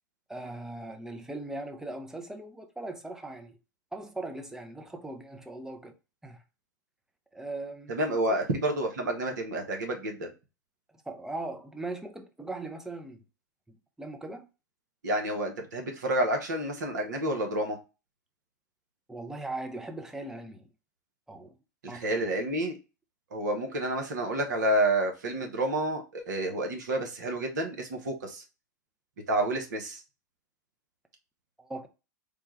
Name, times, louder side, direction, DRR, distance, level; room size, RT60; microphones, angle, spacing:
voice 1, 0.3-3.5 3.9-5.9 6.2-6.4 7.3-7.9 8.3-8.4 11.0-13.2 13.7-14.5 19.1-20.6 21.3-21.6 21.9-22.3 31.6-31.9, right 2 dB, 5° right, 0.6 m, -39 dB
voice 2, 7.9-10.3 15.0-17.8 21.8-22.7 23.3-28.4 29.3-30.0, right 1 dB, 65° right, 1.0 m, -29 dB
3.5 x 2.2 x 3.1 m
figure-of-eight pair, 95°, 10 cm